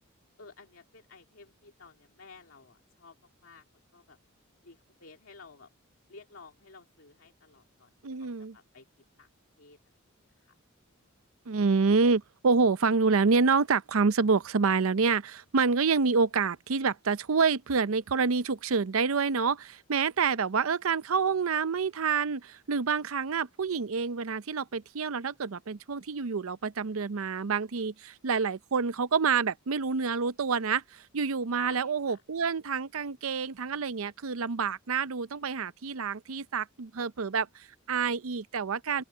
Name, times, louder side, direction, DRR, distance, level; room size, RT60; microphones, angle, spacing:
voice 1, 0.4-3.2 3.4-3.6 3.9-4.2 4.6-5.7 6.1-7.9 8.2-8.9 9.2-9.3 9.6-9.8 10.4-10.5 31.6-32.2, left 5 dB, 70° left, 2.5 m, -52 dB
voice 2, 8.0-8.6 11.5-39.0, right 5 dB, 75° right, 0.6 m, -27 dB
open air
head